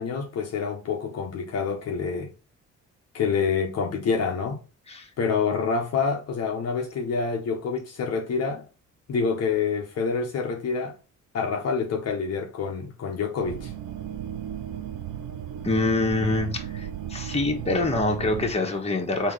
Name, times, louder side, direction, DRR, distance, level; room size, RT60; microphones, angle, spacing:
voice 1, 0.0-2.3 3.1-4.6 5.2-8.6 9.1-11.0 11.3-13.7, left 5 dB, 55° left, 0.8 m, -27 dB
sound 1, 13.4-18.5, right 10 dB, 85° right, 0.5 m, -35 dB
voice 2, 15.6-19.3, left 2 dB, 20° left, 1.3 m, -25 dB
3.6 x 2.8 x 4.8 m
cardioid pair, 90°, 30 cm